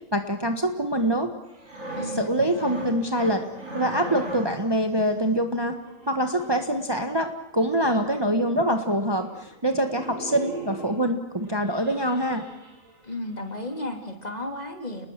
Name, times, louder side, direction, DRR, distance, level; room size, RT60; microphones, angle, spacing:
voice 1, 0.1-1.3 2.1-3.4 3.7-5.8 6.1-12.4, right 1 dB, 20° right, 6 dB, 1.5 m, -25 dB
sound 1, 1.5-4.7 5.7-6.9 8.0-8.1 8.4-8.5 8.8-9.0 9.3-9.5 9.7-11.0 11.5-13.1 13.5-13.7, right 2 dB, 70° right, 6.5 m, -38 dB
voice 2, 2.0-2.8 13.0-15.1, left 1 dB, 30° left, 4 dB, 3.1 m, -34 dB
30.0 x 20.5 x 7.6 m, 0.82 s
omnidirectional pair, 1.4 m